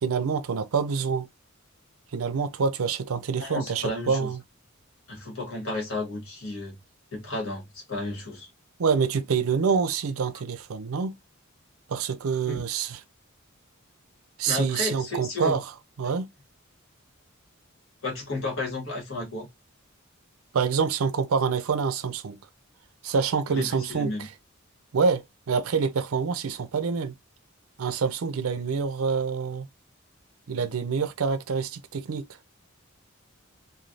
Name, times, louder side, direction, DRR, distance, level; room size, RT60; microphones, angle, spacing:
voice 1, 0.0-1.3 2.1-4.4 8.8-11.2 11.9-13.0 14.4-15.6 16.0-16.3 20.5-22.4 23.0-24.3 24.9-27.2 27.8-29.7 30.5-32.3, right 5 dB, 85° right, 0.5 m, -26 dB
voice 2, 3.4-4.3 5.1-6.8 7.1-8.5 12.5-12.6 14.5-15.6 18.0-19.5 23.5-24.3, left 2 dB, 70° left, 1.4 m, -32 dB
3.3 x 2.2 x 2.5 m
head